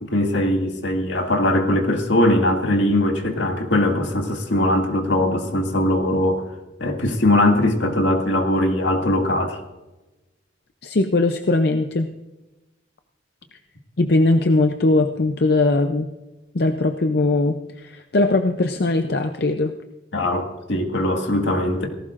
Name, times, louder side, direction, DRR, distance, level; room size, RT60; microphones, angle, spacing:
voice 1, 0.0-6.4 6.8-9.6 20.1-21.9, left 1 dB, 75° left, 3 dB, 2.0 m, -20 dB
voice 2, 10.8-12.1 14.0-16.1 16.5-19.7, left 2 dB, 55° left, 7 dB, 0.6 m, -20 dB
18.0 x 16.0 x 2.6 m, 1.1 s
head